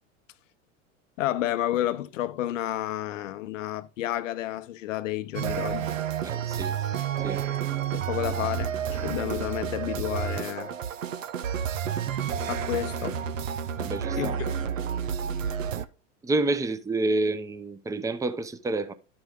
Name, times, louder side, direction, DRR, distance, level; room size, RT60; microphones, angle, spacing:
voice 1, 1.2-5.9 7.9-10.7 12.1-12.2 12.5-13.2 14.2-14.7, left 13 dB, 80° left, 0.8 m, -31 dB
sound 1, 5.3-15.8, right 8 dB, 90° right, 0.7 m, -30 dB
voice 2, 6.2-6.8 7.2-7.4 13.8-14.4 16.2-18.9, right 2 dB, 10° right, 0.6 m, -29 dB
11.5 x 4.8 x 3.6 m
hypercardioid pair, 90°, 38 cm